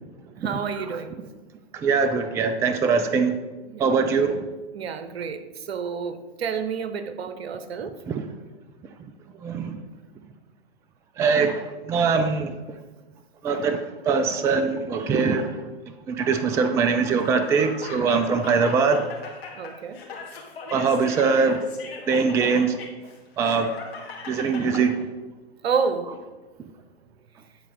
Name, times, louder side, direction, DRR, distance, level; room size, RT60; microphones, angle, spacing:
voice 1, 0.3-1.1 3.7-3.9 4.7-8.0 19.5-20.0 25.6-26.1, right 6 dB, 70° right, 10 dB, 1.0 m, -29 dB
voice 2, 1.7-3.4 3.8-4.4 8.1-8.2 9.4-9.8 11.2-12.5 13.4-15.6 16.1-19.0 20.7-21.6 22.1-22.8 23.4-23.7 24.3-25.0, right 5 dB, 10° right, 8 dB, 0.3 m, -22 dB
Laughter, 17.1-24.8, left 4 dB, 65° left, 2.3 m, -39 dB
10.0 x 4.2 x 5.2 m, 1.2 s
hypercardioid pair, 110°, 32 cm